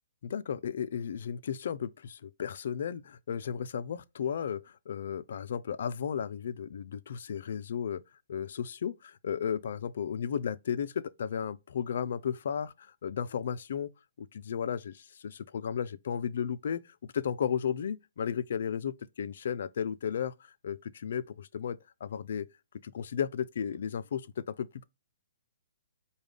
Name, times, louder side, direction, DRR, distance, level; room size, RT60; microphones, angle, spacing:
voice 1, 0.2-8.0 8.3-13.9 14.2-22.5 22.8-24.8, left 8 dB, 65° left, 0.3 m, -34 dB
4.9 x 2.2 x 3.4 m
hypercardioid pair, 145°, 0 cm